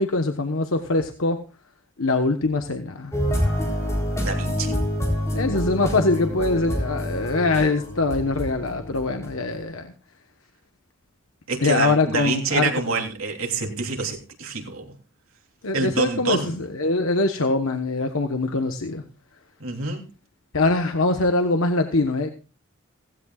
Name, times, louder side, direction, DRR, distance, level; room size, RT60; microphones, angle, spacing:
voice 1, 0.0-1.4 2.0-3.1 5.3-9.9 11.6-13.0 15.6-19.0 20.5-22.3, left 3 dB, 80° left, 6 dB, 1.2 m, -23 dB
sound 1, 3.1-9.5, equal, 15° left, 4.0 m, -27 dB
voice 2, 4.2-4.8 11.5-14.9 15.7-16.6 19.6-20.0, right 3 dB, 85° right, 2 dB, 3.3 m, -27 dB
16.5 x 16.0 x 2.4 m, 0.33 s
head